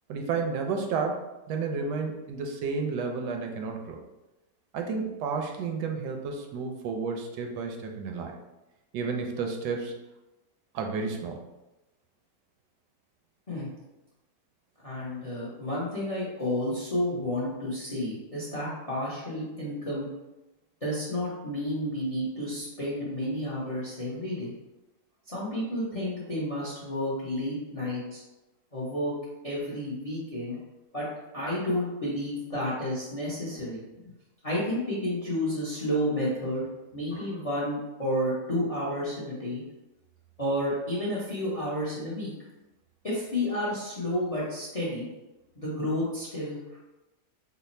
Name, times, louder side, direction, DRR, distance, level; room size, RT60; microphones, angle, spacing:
voice 1, 0.1-4.0 4.7-8.3 8.9-9.9 10.7-11.4, right 4 dB, 80° right, 3 dB, 1.2 m, -31 dB
voice 2, 14.8-20.1 20.8-24.5 25.3-28.2 28.7-29.1 29.4-30.6 30.9-31.1 31.3-34.1 34.4-36.6 36.9-39.6 40.4-42.3 43.0-45.1 45.6-46.8, left 1 dB, 40° left, -6 dB, 0.5 m, -31 dB
3.3 x 2.0 x 4.1 m, 1.0 s
omnidirectional pair, 1.8 m